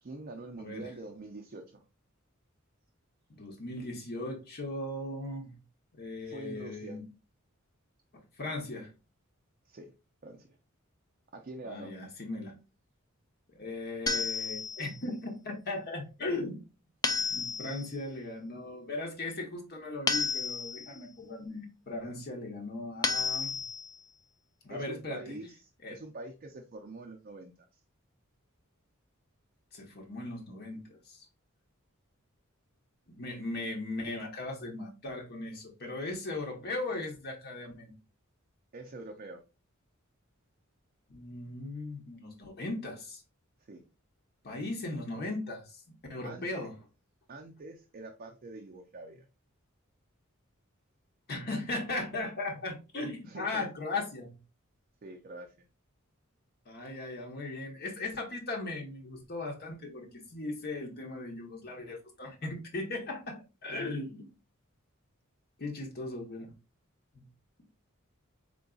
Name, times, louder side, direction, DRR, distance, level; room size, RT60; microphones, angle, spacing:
voice 1, 0.0-1.8 6.2-7.0 9.6-10.6 11.3-11.9 24.7-27.8 38.7-39.4 43.7-43.9 46.2-46.7 47.3-49.3 53.3-53.7 55.0-55.7, right 2 dB, 45° right, 0.5 m, -45 dB
voice 2, 0.6-0.9 3.4-5.6 5.9-7.0 8.1-8.9 11.6-12.6 13.6-16.6 17.3-23.6 24.6-25.4 25.8-26.0 29.7-31.3 33.1-37.9 41.1-43.2 44.4-46.7 51.3-54.4 56.7-64.3 65.6-66.5 67.1-67.3, left 2 dB, 50° left, 0.9 m, -38 dB
sound 1, 14.1-15.0 17.0-17.9 20.1-21.0 23.0-24.0, left 4 dB, 20° left, 0.3 m, -31 dB
3.8 x 3.8 x 2.3 m
head